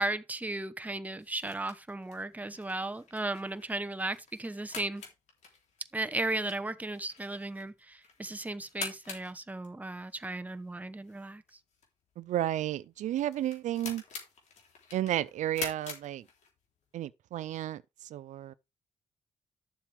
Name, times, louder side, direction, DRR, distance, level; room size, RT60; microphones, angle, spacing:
voice 1, 0.0-5.0 5.9-11.4, right 2 dB, 10° right, 1.0 m, -35 dB
sound 1, 1.2-16.8, left 5 dB, 70° left, 3.7 m, -47 dB
voice 2, 12.2-14.0 14.9-16.2 16.9-18.5, right 12 dB, 80° right, 0.5 m, -32 dB
11.5 x 7.3 x 3.5 m
cardioid pair, 90°, 12 cm